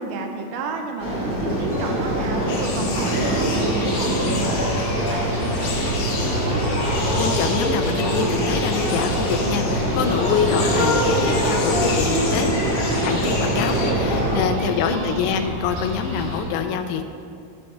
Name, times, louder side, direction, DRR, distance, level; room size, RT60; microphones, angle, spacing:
voice 1, 0.0-6.7 14.4-15.3, right 3 dB, 80° right, 3 dB, 2.5 m, -32 dB
sound 1, 1.0-14.4, right 1 dB, 35° left, 0.8 m, -23 dB
sound 2, 1.5-16.4, equal, 40° right, 3.2 m, -32 dB
sound 3, 2.5-13.9, left 3 dB, 65° left, 2.6 m, -31 dB
voice 2, 7.2-12.5 13.0-17.0, left 7 dB, 85° left, 8 dB, 2.6 m, -25 dB
10.5 x 7.0 x 4.3 m, 2.4 s
omnidirectional pair, 4.6 m